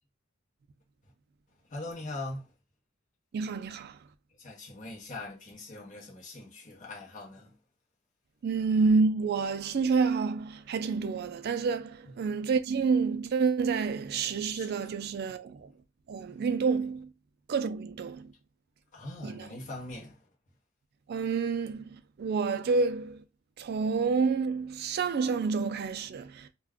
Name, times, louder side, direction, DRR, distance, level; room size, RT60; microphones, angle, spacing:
voice 1, 1.6-2.5 4.3-7.6 12.0-12.2 14.4-14.9 18.9-20.3, left 2 dB, 35° left, 0.8 m, -42 dB
voice 2, 3.3-4.0 8.4-15.7 16.1-17.1 17.5-18.3 19.2-19.5 21.1-23.2 23.6-26.5, right 4 dB, 50° right, 0.3 m, -28 dB
2.3 x 2.2 x 3.5 m
head